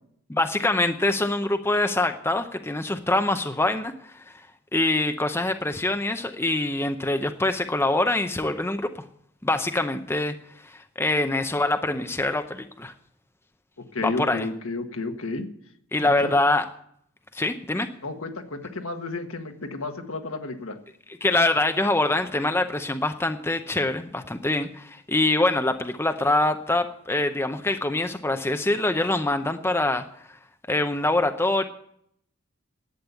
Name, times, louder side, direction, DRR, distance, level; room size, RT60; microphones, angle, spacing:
voice 1, 0.3-4.5 4.7-9.1 9.4-10.4 10.6-12.9 14.0-14.5 15.9-16.6 17.3-17.9 21.2-30.0 30.7-31.7, left 2 dB, 10° left, 7 dB, 0.6 m, -24 dB
voice 2, 13.9-15.5 16.0-16.3 18.0-20.8, left 3 dB, 70° left, 5 dB, 1.5 m, -32 dB
11.5 x 8.6 x 8.3 m, 0.69 s
head